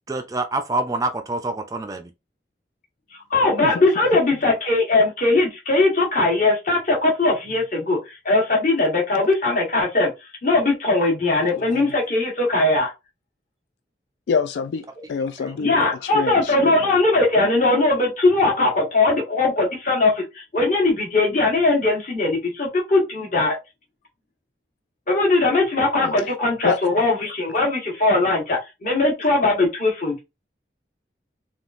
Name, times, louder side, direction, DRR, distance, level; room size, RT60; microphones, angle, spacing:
voice 1, 0.1-2.1 15.4-15.5, right 2 dB, 20° right, 0.3 m, -26 dB
voice 2, 3.3-10.1 10.4-12.9 15.6-23.6 25.1-30.2, left 2 dB, 45° left, 1.1 m, -20 dB
voice 3, 11.4-11.8 14.3-15.7 16.0-16.8 26.0-26.3 26.6-26.8, left 6 dB, 80° left, 0.3 m, -26 dB
3.5 x 2.4 x 2.4 m
head